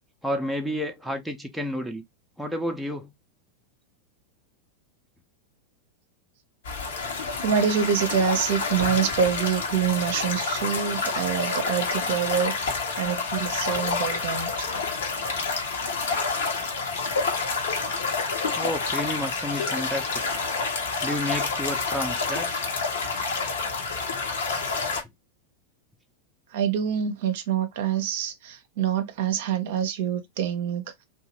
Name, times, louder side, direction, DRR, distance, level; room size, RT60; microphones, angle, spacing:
voice 1, 0.2-2.0 2.4-3.1 18.5-20.4 21.0-22.7, equal, ahead, 0.5 m, -31 dB
sound 1, 6.6-25.0, left 4 dB, 60° left, 0.8 m, -28 dB
voice 2, 7.4-14.8 15.3-15.4 26.5-31.0, right 8 dB, 55° right, 0.5 m, -26 dB
2.8 x 2.2 x 2.9 m
figure-of-eight pair, 90°, 0 cm